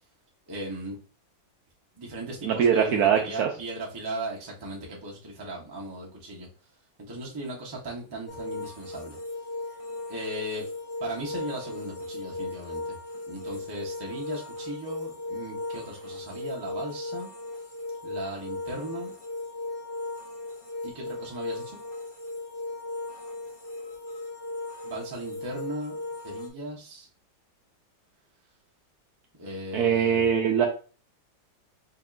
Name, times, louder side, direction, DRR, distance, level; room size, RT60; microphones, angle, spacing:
voice 1, 0.5-1.0 2.0-6.5 7.1-9.2 10.1-10.7 11.0-13.0 13.3-17.3 18.0-19.1 20.8-21.8 24.8-25.9 26.2-27.1 29.4-30.3, right 1 dB, 35° right, -3 dB, 0.3 m, -37 dB
voice 2, 2.4-3.5 29.7-30.7, right 8 dB, 75° right, 2 dB, 0.9 m, -22 dB
sound 1, 8.3-26.5, left 2 dB, 50° left, 0.6 m, -37 dB
5.1 x 2.8 x 2.5 m, 0.36 s
omnidirectional pair, 2.1 m